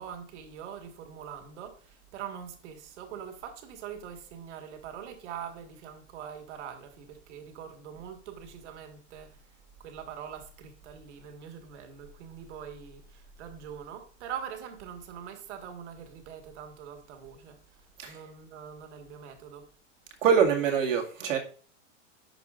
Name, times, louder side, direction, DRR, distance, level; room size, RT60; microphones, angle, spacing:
voice 1, 0.0-9.4 9.8-19.7, right 8 dB, 65° right, 1.7 m, -43 dB
voice 2, 20.2-21.4, right 7 dB, 85° right, 2.1 m, -24 dB
11.5 x 4.7 x 2.5 m
hypercardioid pair, 140°, 38 cm